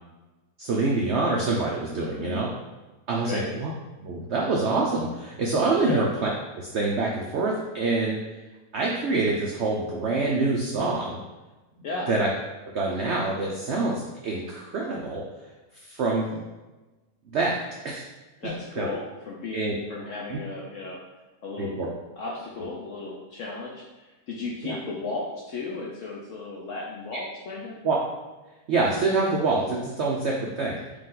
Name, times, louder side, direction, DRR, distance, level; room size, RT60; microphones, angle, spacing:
voice 1, 0.6-2.5 3.1-3.7 4.0-6.3 6.6-8.2 8.7-11.2 12.1-12.3 12.7-15.2 15.7-16.4 17.3-17.6 17.8-18.0 18.8-18.9 19.5-19.7 20.3-20.4 21.6-21.9 24.6-24.8 27.8-28.0 28.7-30.8, right 3 dB, 85° right, -2 dB, 0.6 m, -26 dB
voice 2, 2.1-2.4 3.2-3.5 5.8-6.1 11.8-12.1 18.4-21.0 21.4-21.8 22.2-27.8, left 3 dB, 70° left, -2 dB, 0.7 m, -35 dB
4.8 x 2.5 x 3.8 m, 1.1 s
omnidirectional pair, 1.8 m